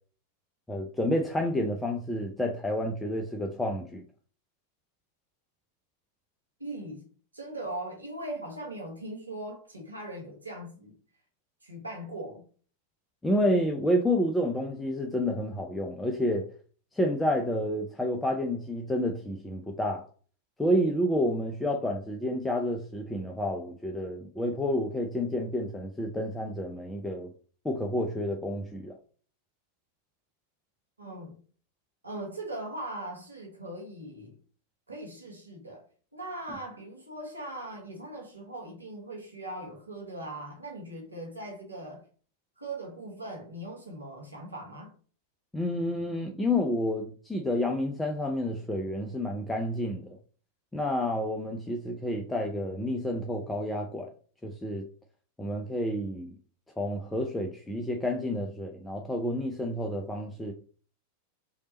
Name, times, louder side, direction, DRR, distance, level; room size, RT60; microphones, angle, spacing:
voice 1, 0.7-4.0 13.2-16.5 16.9-20.0 20.6-27.3 27.6-28.9 45.5-50.2 50.7-54.1 54.4-54.8 55.4-56.4 56.8-60.5, left 1 dB, 5° left, 0.5 m, -29 dB
voice 2, 6.6-7.1 7.3-11.0 11.6-12.5 31.0-31.4 32.0-34.3 34.9-35.9 36.1-42.1 42.6-44.9, right 1 dB, 80° right, 1.1 m, -40 dB
3.3 x 2.8 x 4.1 m
figure-of-eight pair, 90°, 0 cm